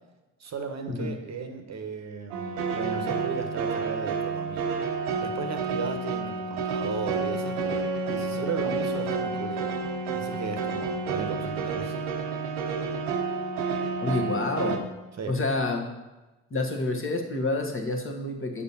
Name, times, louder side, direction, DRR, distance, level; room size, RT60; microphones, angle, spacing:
voice 1, 0.4-4.7 5.2-9.7 10.1-11.9 15.2-15.4, right 5 dB, 40° right, 6 dB, 1.0 m, -35 dB
sound 1, 2.3-14.8, right 4 dB, 80° right, 0.7 m, -30 dB
voice 2, 14.0-14.8 15.3-15.9 16.5-18.6, left 2 dB, 30° left, 2 dB, 1.3 m, -28 dB
6.9 x 6.7 x 2.8 m, 1.1 s
hypercardioid pair, 50°, 44 cm